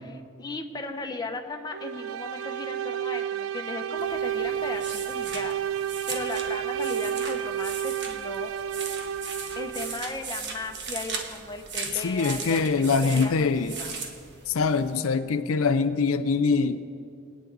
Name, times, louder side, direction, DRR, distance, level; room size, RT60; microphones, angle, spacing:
voice 1, 0.1-5.5 6.1-8.5 9.3-13.9, left 3 dB, 20° left, 3 dB, 0.8 m, -37 dB
sound 1, 1.7-10.1, right 9 dB, 85° right, 0.4 m, -31 dB
sound 2, 4.0-14.9, right 5 dB, 55° right, 1.3 m, -38 dB
voice 2, 12.0-13.8 14.5-16.8, left 4 dB, 75° left, 10 dB, 0.5 m, -24 dB
21.5 x 9.1 x 4.0 m, 2.4 s
head